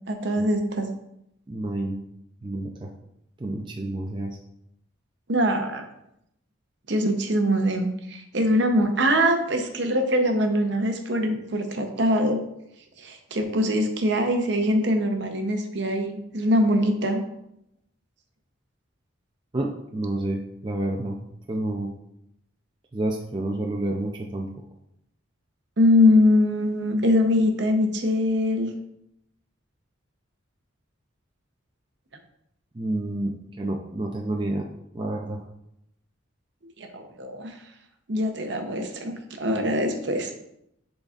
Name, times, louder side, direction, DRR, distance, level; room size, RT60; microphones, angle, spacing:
voice 1, 0.1-0.9 5.3-5.8 6.9-12.4 13.0-17.2 25.8-28.7 36.8-37.6 38.1-40.3, left 1 dB, 55° right, 4 dB, 0.8 m, -23 dB
voice 2, 1.5-2.0 2.4-2.9 3.4-4.4 19.5-21.2 21.5-21.9 22.9-24.5 32.7-34.7 34.9-35.4, right 1 dB, 25° right, 0 dB, 0.5 m, -29 dB
10.0 x 4.0 x 2.4 m, 0.79 s
head